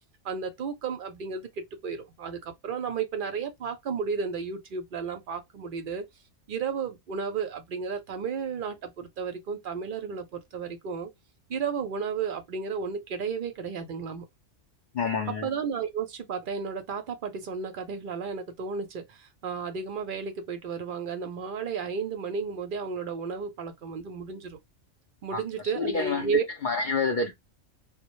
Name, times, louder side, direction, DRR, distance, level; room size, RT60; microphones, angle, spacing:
voice 1, 0.2-6.0 6.5-11.1 11.5-14.3 15.4-24.6 25.2-26.4, right 6 dB, 60° right, 0.6 m, -33 dB
voice 2, 14.9-15.5 25.3-25.4 25.8-26.3 26.6-27.4, left 4 dB, 65° left, 0.5 m, -28 dB
2.1 x 2.0 x 2.9 m
omnidirectional pair, 1.3 m